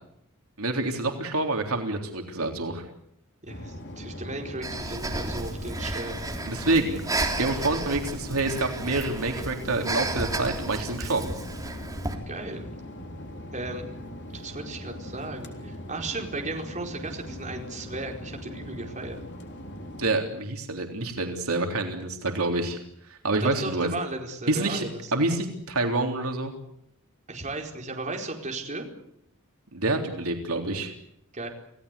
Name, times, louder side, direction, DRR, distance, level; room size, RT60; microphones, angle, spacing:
voice 1, 0.6-2.8 6.5-11.3 20.0-22.8 23.1-23.9 24.5-24.8 25.1-26.5 29.7-30.9, right 2 dB, 80° right, 4 dB, 3.6 m, -27 dB
voice 2, 3.4-6.3 12.3-12.7 13.5-13.9 14.3-19.2 23.4-25.2 27.3-28.9 31.3-31.5, right 2 dB, 35° right, 1 dB, 4.6 m, -35 dB
sound 1, 3.5-20.2, left 1 dB, 55° left, 3.6 m, -40 dB
Breathing, 4.6-12.1, right 2 dB, 15° right, 3.4 m, -33 dB
28.0 x 17.5 x 8.4 m, 0.76 s
head